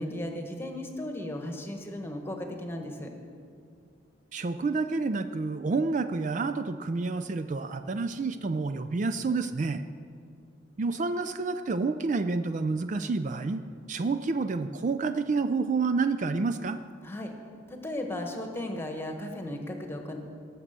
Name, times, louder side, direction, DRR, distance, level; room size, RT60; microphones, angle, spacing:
voice 1, 0.0-3.1 17.0-17.3 17.7-20.2, left 1 dB, 15° left, 3 dB, 1.3 m, -35 dB
voice 2, 4.3-9.8 10.8-16.8, right 4 dB, 40° right, 10 dB, 0.4 m, -29 dB
17.5 x 7.4 x 6.7 m, 2.3 s
head